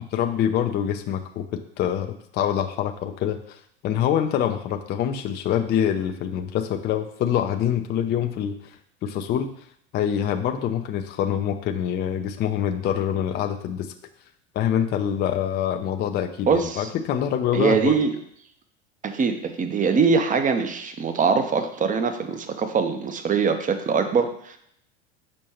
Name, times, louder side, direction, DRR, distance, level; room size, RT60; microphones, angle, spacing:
voice 1, 0.1-8.6 9.0-9.5 9.9-13.9 14.5-18.0, left 9 dB, 30° left, 6 dB, 0.5 m, -25 dB
voice 2, 16.5-16.9 17.5-18.1 19.0-24.6, right 5 dB, 25° right, 8 dB, 0.8 m, -22 dB
6.4 x 5.3 x 2.9 m, 0.69 s
hypercardioid pair, 85°, 35 cm